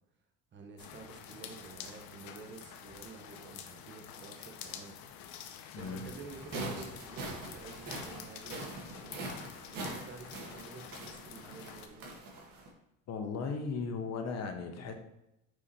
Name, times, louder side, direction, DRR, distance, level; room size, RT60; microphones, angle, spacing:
voice 1, 0.5-5.0 5.7-9.2 9.7-12.1, right 4 dB, 30° right, 3 dB, 1.1 m, -49 dB
sound 1, 0.8-11.9, left 8 dB, 65° left, 0.8 m, -48 dB
voice 2, 5.7-6.0 13.1-15.0, left 5 dB, 45° left, 5 dB, 1.0 m, -36 dB
sound 2, 6.2-12.7, right 2 dB, 60° right, 1.9 m, -43 dB
5.0 x 4.8 x 4.3 m, 0.87 s
cardioid pair, 125°, 38 cm